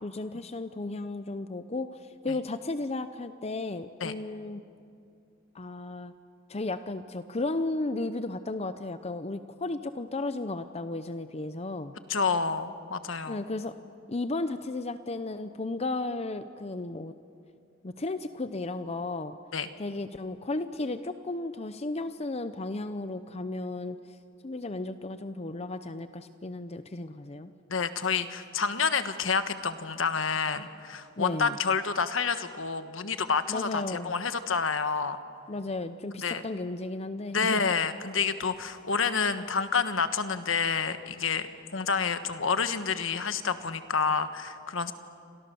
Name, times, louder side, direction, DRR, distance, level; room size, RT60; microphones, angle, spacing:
voice 1, 0.0-4.6 5.5-6.1 6.5-11.9 13.3-13.8 14.1-17.1 17.8-19.4 19.8-24.0 24.4-27.5 31.2-31.5 33.5-34.1 35.5-37.7, left 2 dB, 30° left, 11 dB, 0.7 m, -34 dB
voice 2, 12.1-13.4 19.5-19.7 27.7-35.2 36.2-36.4 37.3-41.5 41.7-44.9, left 5 dB, 75° left, 10 dB, 1.4 m, -28 dB
29.5 x 26.0 x 7.0 m, 2.4 s
head